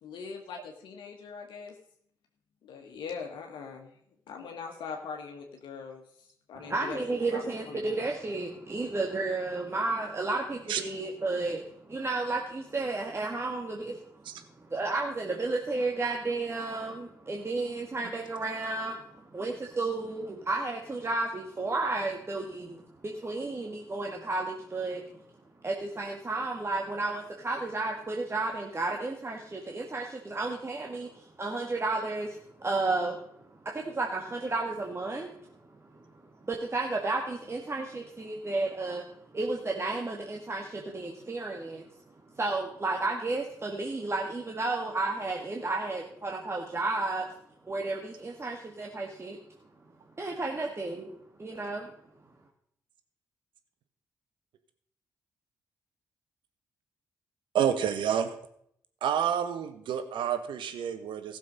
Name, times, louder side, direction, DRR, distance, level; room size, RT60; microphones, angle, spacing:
voice 1, 0.0-1.7 2.6-3.9 4.3-6.0 6.5-7.0 7.3-8.0, left 5 dB, 70° left, 2 dB, 1.5 m, -41 dB
voice 2, 6.6-14.0 14.6-22.8 23.0-25.0 25.6-33.2 33.6-35.4 35.9-36.1 36.4-39.0 39.3-41.9 42.4-47.3 47.7-49.4 50.2-51.1 51.4-51.9, right 3 dB, 30° right, 0 dB, 1.9 m, -32 dB
voice 3, 57.5-58.3 59.0-61.4, right 9 dB, 70° right, 9 dB, 1.3 m, -29 dB
16.0 x 6.8 x 5.3 m, 0.69 s
hypercardioid pair, 45°, 9 cm